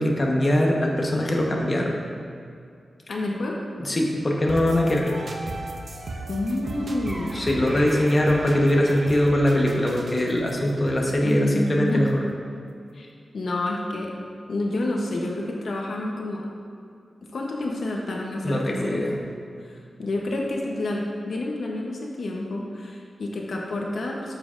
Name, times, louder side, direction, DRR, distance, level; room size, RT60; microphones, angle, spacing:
voice 1, 0.0-2.0 3.8-5.1 7.3-12.1 18.4-19.2, left 1 dB, 30° left, -1 dB, 1.0 m, -22 dB
voice 2, 3.1-3.6 6.3-7.3 11.0-12.1 12.9-13.1 13.3-14.1 14.5-16.5 17.3-19.0 19.6-24.3, left 2 dB, 65° left, -1 dB, 0.8 m, -29 dB
sound 1, 4.5-12.3, right 2 dB, 45° right, 0.6 m, -38 dB
Door, 6.6-6.7 7.0-10.5 10.9-11.2 11.9-12.0, equal, 30° right, 1.7 m, -41 dB
8.7 x 7.3 x 2.5 m, 2.3 s
wide cardioid pair, 130°, 0 cm